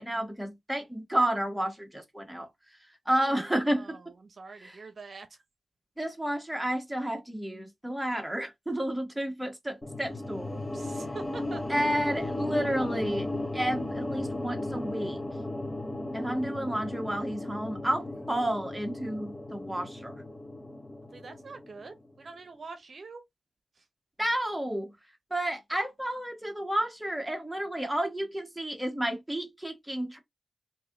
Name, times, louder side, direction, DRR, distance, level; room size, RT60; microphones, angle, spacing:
voice 1, 0.0-2.5 3.0-4.0 4.6-4.8 6.0-10.5 11.7-15.2 16.1-20.2 24.2-24.9 25.3-30.2, right 1 dB, 5° right, 1.3 m, -31 dB
voice 2, 3.1-5.4 10.5-12.0 21.1-23.2 23.8-23.9, right 4 dB, 60° right, 0.7 m, -46 dB
sound 1, 9.8-22.1, left 1 dB, 25° left, 0.9 m, -35 dB
3.0 x 2.8 x 3.7 m
cardioid pair, 55°, 0 cm